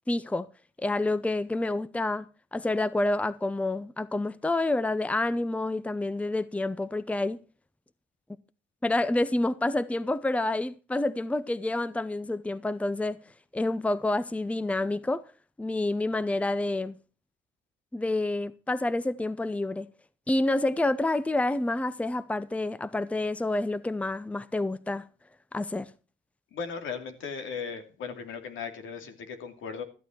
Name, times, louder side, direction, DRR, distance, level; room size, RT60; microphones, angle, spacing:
voice 1, 0.1-0.5 0.8-7.4 8.8-13.2 13.5-15.3 15.6-17.0 17.9-19.9 20.3-25.0 25.5-25.9, left 2 dB, 5° left, 0.7 m, -28 dB
voice 2, 26.5-29.8, left 5 dB, 80° left, 2.7 m, -37 dB
14.0 x 9.1 x 4.5 m
cardioid pair, 90°, 20 cm